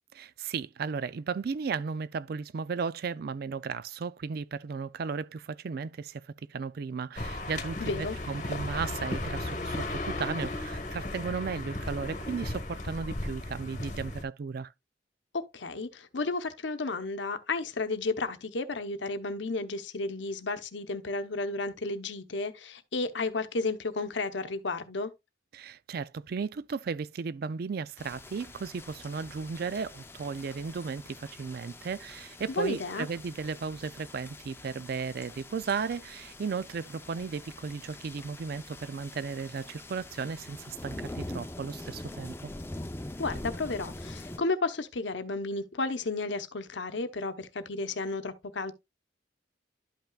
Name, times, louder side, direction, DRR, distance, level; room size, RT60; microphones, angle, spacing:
voice 1, 0.2-6.2 6.5-14.7 25.5-42.5, right 5 dB, 55° right, 0.4 m, -35 dB
sound 1, 7.2-14.2, left 2 dB, 40° left, 1.1 m, -35 dB
voice 2, 7.8-8.2 15.3-25.1 32.5-33.1 43.2-48.7, left 3 dB, 75° left, 0.8 m, -32 dB
sound 2, 28.0-44.4, left 1 dB, 15° left, 0.5 m, -44 dB
11.5 x 5.6 x 2.3 m
head